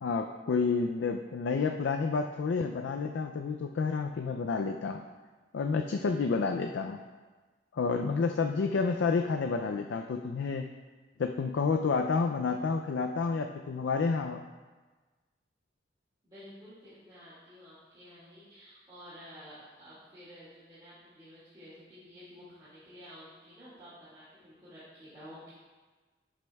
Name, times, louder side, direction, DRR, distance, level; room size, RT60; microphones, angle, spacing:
voice 1, 0.0-5.0 5.5-7.0 7.7-10.7 11.2-14.4, left 4 dB, 80° left, 5 dB, 0.4 m, -30 dB
voice 2, 16.2-25.5, equal, 25° right, -12 dB, 2.0 m, -51 dB
11.5 x 6.2 x 2.3 m, 1.3 s
head